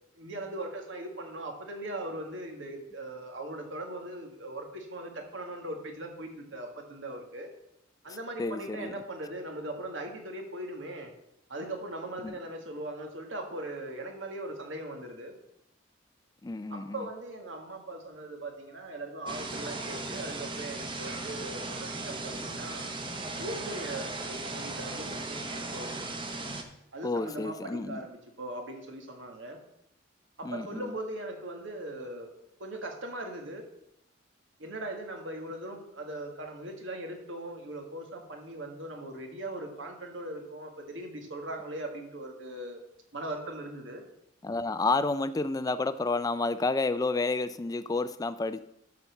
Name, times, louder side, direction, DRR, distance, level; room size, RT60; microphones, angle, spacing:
voice 1, 0.2-7.5 8.0-11.1 11.5-15.3 16.7-22.9 23.4-25.9 26.9-29.6 30.4-32.3 32.6-33.7 34.6-42.8 43.1-44.0, right 1 dB, 80° right, 3 dB, 1.8 m, -39 dB
voice 2, 8.4-8.9 12.2-12.3 16.4-17.0 27.0-28.0 30.4-30.9 44.4-48.6, left 3 dB, 20° left, 13 dB, 0.3 m, -30 dB
sound 1, 19.3-26.6, right 2 dB, 25° right, 1.0 m, -37 dB
12.0 x 4.2 x 7.0 m, 0.80 s
head